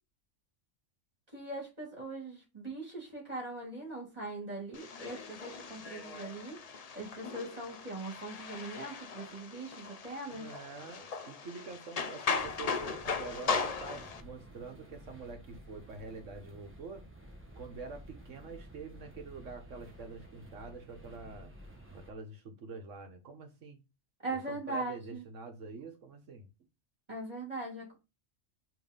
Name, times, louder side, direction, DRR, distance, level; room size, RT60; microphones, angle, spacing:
voice 1, 1.3-6.6 6.9-10.5 24.2-25.2 27.1-28.0, right 2 dB, 30° right, 3.1 m, -40 dB
sound 1, 4.7-14.2, left 5 dB, 45° left, 0.5 m, -38 dB
voice 2, 10.3-17.0 17.5-21.5 21.9-23.8 24.3-26.5, right 4 dB, 70° right, 1.6 m, -46 dB
sound 2, 12.3-22.1, equal, 10° right, 1.1 m, -52 dB
5.3 x 3.5 x 5.3 m
omnidirectional pair, 1.3 m